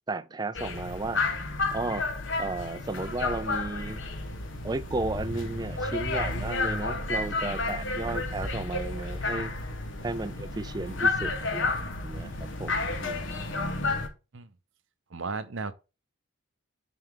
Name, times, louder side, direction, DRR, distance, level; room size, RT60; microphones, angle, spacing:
voice 1, 0.1-1.2 1.7-2.1 2.4-4.0 4.6-9.5 10.0-13.3, right 3 dB, 20° right, 0.4 m, -34 dB
sound 1, 0.5-14.1, left 3 dB, 55° left, 1.3 m, -31 dB
voice 2, 15.1-15.7, right 4 dB, 60° right, 0.7 m, -34 dB
9.3 x 4.6 x 3.7 m
head